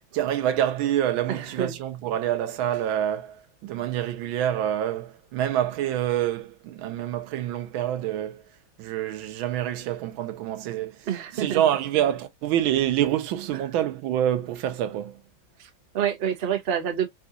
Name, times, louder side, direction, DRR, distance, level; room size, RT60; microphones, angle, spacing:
voice 1, 0.1-8.4 8.8-11.1 11.3-15.2, right 11 dB, 90° right, 1.5 m, -26 dB
voice 2, 1.3-1.8 11.1-11.7 13.5-13.6 15.6-17.1, right 9 dB, 60° right, 0.6 m, -28 dB
4.1 x 2.8 x 2.3 m
omnidirectional pair, 2.1 m